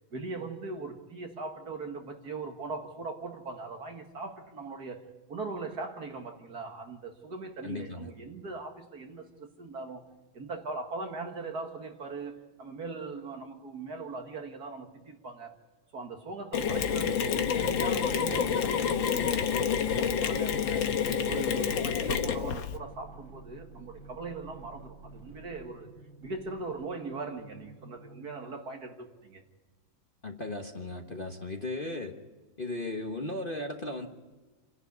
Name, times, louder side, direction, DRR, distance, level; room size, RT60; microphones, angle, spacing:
voice 1, 0.1-10.1 10.3-15.6 15.9-20.9 21.2-25.9 26.2-29.4, right 3 dB, 50° right, 2.3 m, -40 dB
voice 2, 7.6-8.1 30.2-32.2 32.6-34.1, left 2 dB, 30° left, 1.2 m, -36 dB
Mechanisms, 16.5-22.8, left 7 dB, 75° left, 1.8 m, -28 dB
sound 1, 20.0-28.7, right 3 dB, 75° right, 5.5 m, -51 dB
28.0 x 11.5 x 9.5 m
omnidirectional pair, 2.1 m